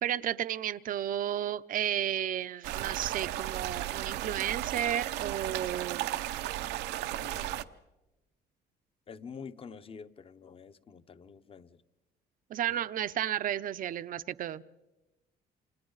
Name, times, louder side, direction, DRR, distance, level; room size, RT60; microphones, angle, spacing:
voice 1, 0.0-6.1 12.5-14.6, right 11 dB, 55° right, 0.6 m, -33 dB
sound 1, 2.6-7.6, right 13 dB, 85° right, 0.8 m, -35 dB
voice 2, 7.2-7.7 9.1-11.8 12.7-12.8, left 6 dB, 35° left, 0.9 m, -47 dB
29.5 x 26.5 x 4.0 m
cardioid pair, 110°, 17 cm